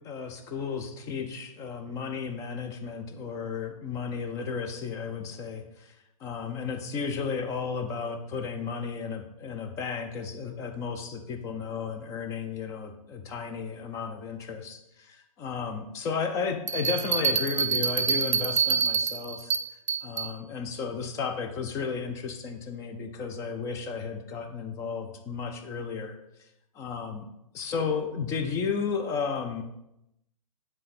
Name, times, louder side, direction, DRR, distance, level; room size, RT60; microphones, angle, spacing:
voice 1, 0.0-5.9 6.2-19.5 20.0-26.2 26.7-27.3 27.5-29.6, left 5 dB, 15° left, 6 dB, 0.5 m, -33 dB
Bell, 16.7-20.3, right 6 dB, 55° right, 0.5 m, -27 dB
7.2 x 3.3 x 4.1 m, 0.84 s
figure-of-eight pair, 115°, 19 cm